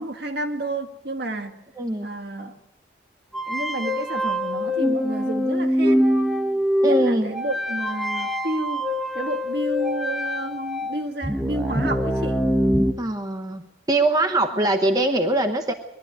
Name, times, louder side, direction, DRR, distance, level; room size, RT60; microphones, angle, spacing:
voice 1, 0.0-1.5 2.0-2.5 3.5-6.1 6.8-8.9 9.1-12.4 14.5-14.7, right 1 dB, 55° right, 5 dB, 1.8 m, -30 dB
voice 2, 1.8-2.1 6.8-7.3 13.0-13.6 13.9-15.7, right 2 dB, 20° right, 5 dB, 1.0 m, -22 dB
sound 1, 3.3-12.9, equal, ahead, 1.1 m, -24 dB
21.5 x 12.5 x 9.8 m, 0.94 s
head